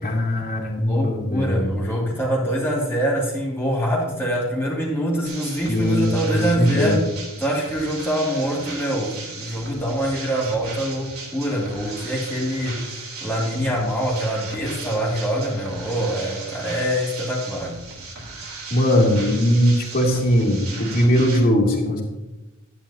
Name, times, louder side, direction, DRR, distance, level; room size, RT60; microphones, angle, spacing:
voice 1, 0.0-1.8 5.7-7.0 18.7-22.0, equal, 45° left, -1 dB, 2.9 m, -20 dB
voice 2, 0.8-7.1 7.4-17.8, equal, 10° left, -5 dB, 2.5 m, -25 dB
sound 1, 5.3-21.4, right 3 dB, 70° right, 3.5 m, -37 dB
13.0 x 10.5 x 2.9 m, 1.0 s
head